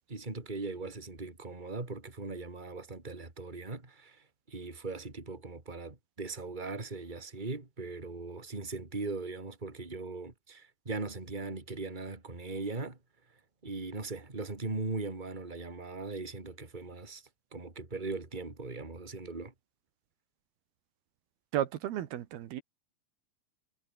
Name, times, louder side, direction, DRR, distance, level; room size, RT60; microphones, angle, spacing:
voice 1, 0.1-13.0 13.6-17.2 17.5-19.5, right 3 dB, 10° right, 3.2 m, -39 dB
voice 2, 21.5-22.6, right 12 dB, 80° right, 3.4 m, -33 dB
omnidirectional pair, 4.4 m